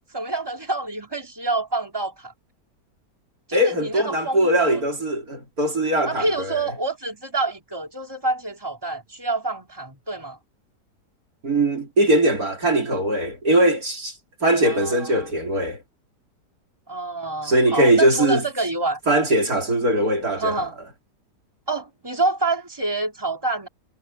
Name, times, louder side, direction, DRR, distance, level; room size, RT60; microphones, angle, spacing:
voice 1, 0.1-2.3 3.5-4.8 6.0-10.4 14.6-15.3 16.9-19.0 20.4-20.7 21.7-23.7, right 2 dB, 15° right, 3.9 m, -27 dB
voice 2, 3.5-6.6 11.4-14.2 14.4-15.8 17.4-18.4 19.1-20.7, right 1 dB, 60° right, 4.5 m, -21 dB
omnidirectional pair, 1.8 m